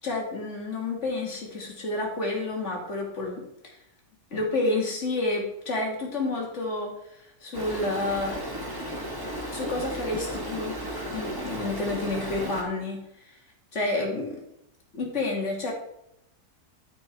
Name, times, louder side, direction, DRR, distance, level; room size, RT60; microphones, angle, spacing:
voice 1, 0.0-3.5 4.3-6.9 7.4-8.4 9.0-9.1 9.5-10.8 11.1-13.0 13.7-14.4 14.9-15.7, left 2 dB, 50° left, -1 dB, 2.9 m, -29 dB
Stream, 7.5-12.6, right 1 dB, 15° right, 1.8 m, -34 dB
12.5 x 5.8 x 4.7 m, 0.80 s
omnidirectional pair, 1.6 m